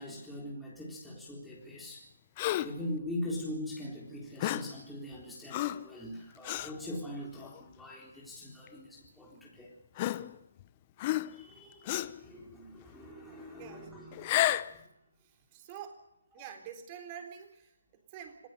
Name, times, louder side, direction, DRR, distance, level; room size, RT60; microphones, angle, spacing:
voice 1, 0.0-2.1 2.6-9.8 10.0-10.1 11.1-14.8, left 1 dB, ahead, -5 dB, 3.8 m, -42 dB
Gasp, 2.4-2.8 4.4-4.8 5.5-5.9 6.4-6.7 7.4-7.6 8.7-8.8 10.0-10.6 11.0-11.5 11.9-12.2 14.1-14.8, left 15 dB, 25° left, 0.7 m, -31 dB
voice 2, 13.5-14.0 14.8-14.9 15.2-16.0 16.3-18.5, right 8 dB, 25° right, 6 dB, 3.7 m, -47 dB
26.0 x 17.0 x 6.7 m, 0.85 s
figure-of-eight pair, 155°, 0 cm